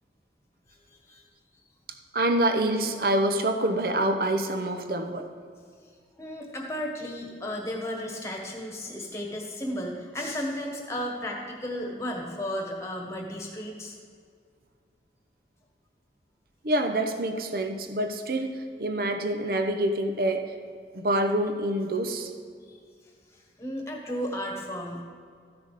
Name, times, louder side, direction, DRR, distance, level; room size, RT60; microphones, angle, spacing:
voice 1, 2.1-5.3 16.6-20.5 20.9-22.3, right 1 dB, 55° right, 6 dB, 0.8 m, -26 dB
voice 2, 6.2-13.9 22.7-22.8 23.6-25.0, equal, 15° left, 0 dB, 1.4 m, -34 dB
14.0 x 6.1 x 4.9 m, 2.1 s
head